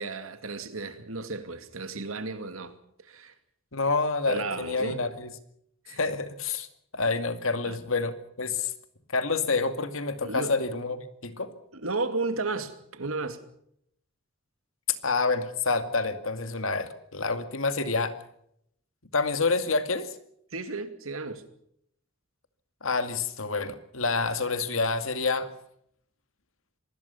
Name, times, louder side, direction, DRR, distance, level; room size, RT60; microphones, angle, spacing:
voice 1, 0.0-3.3 4.3-5.1 5.8-6.0 7.7-7.8 10.2-10.6 11.7-13.4 20.5-21.4, right 3 dB, 80° right, 2.6 m, -34 dB
voice 2, 3.7-5.3 6.0-6.7 6.9-8.7 9.1-11.5 15.0-18.1 19.1-20.1 22.8-25.5, left 3 dB, 70° left, 2.3 m, -28 dB
25.5 x 20.0 x 5.7 m
head